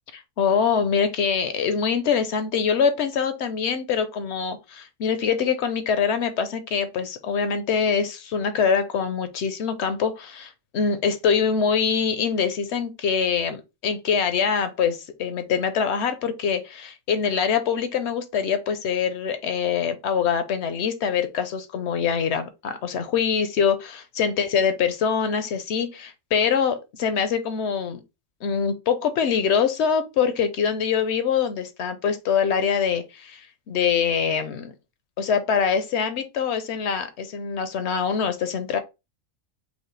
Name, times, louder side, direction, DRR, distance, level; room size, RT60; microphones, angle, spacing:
voice 1, 0.1-28.0 28.4-34.7 35.2-38.8, left 6 dB, 65° left, 0.8 m, -24 dB
5.2 x 2.1 x 3.1 m
omnidirectional pair, 1.4 m